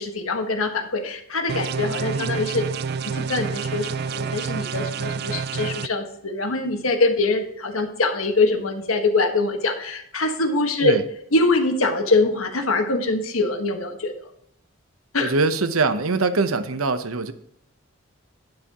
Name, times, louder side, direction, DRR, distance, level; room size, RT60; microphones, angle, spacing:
voice 1, 0.0-2.7 3.1-11.0 11.3-14.1 15.1-15.3, left 3 dB, 85° left, 5 dB, 1.6 m, -23 dB
sound 1, 1.5-5.9, right 5 dB, 50° right, 0.3 m, -28 dB
voice 2, 15.2-17.3, right 3 dB, 90° right, 10 dB, 0.9 m, -23 dB
11.5 x 9.7 x 3.0 m, 0.72 s
head